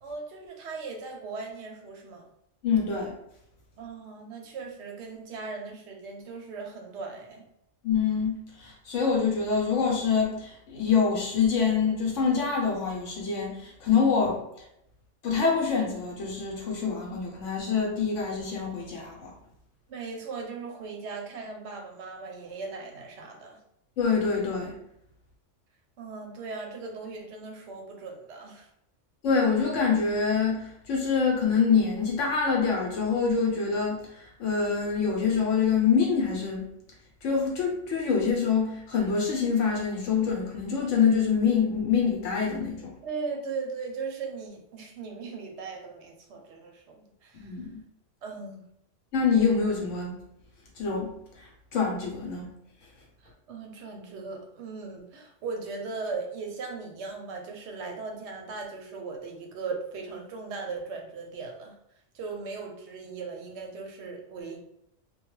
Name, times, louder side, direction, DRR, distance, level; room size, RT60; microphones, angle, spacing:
voice 1, 0.0-2.2 3.8-7.4 19.9-23.6 26.0-28.7 43.0-47.6 48.2-48.6 53.2-61.8 62.1-64.6, right 4 dB, 70° right, 2 dB, 0.8 m, -38 dB
voice 2, 2.6-3.1 7.8-14.4 15.2-19.3 24.0-24.7 29.2-36.6 37.2-42.9 47.4-47.8 49.1-50.1 50.8-52.5, left 5 dB, 75° left, -1 dB, 1.0 m, -25 dB
2.2 x 2.2 x 3.0 m, 0.76 s
omnidirectional pair, 1.3 m